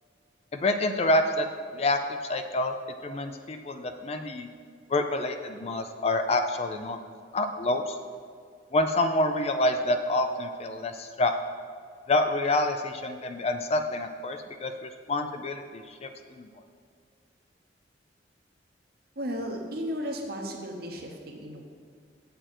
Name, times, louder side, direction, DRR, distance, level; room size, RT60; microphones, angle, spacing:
voice 1, 0.5-1.5 1.7-2.0 2.3-2.7 3.0-4.5 4.9-7.0 7.3-8.0 8.7-11.3 12.1-16.1 16.4-16.5, left 2 dB, 35° left, 7 dB, 0.4 m, -27 dB
voice 2, 19.2-21.6, equal, 55° right, 2 dB, 1.0 m, -34 dB
7.5 x 6.8 x 4.3 m, 2.2 s
head